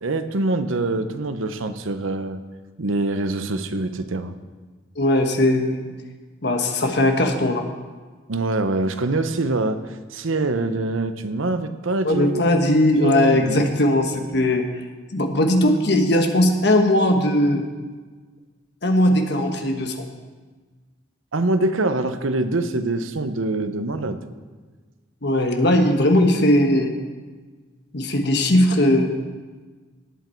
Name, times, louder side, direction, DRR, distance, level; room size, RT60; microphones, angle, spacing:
voice 1, 0.0-2.4 2.8-4.3 8.3-12.6 13.0-13.7 21.3-24.2, right 2 dB, 80° right, 10 dB, 0.8 m, -24 dB
voice 2, 5.0-6.0 6.4-7.6 12.0-14.6 15.1-17.6 18.8-20.1 25.2-26.9 27.9-29.1, left 1 dB, 55° left, 4 dB, 1.3 m, -19 dB
18.5 x 8.3 x 4.5 m, 1.4 s
head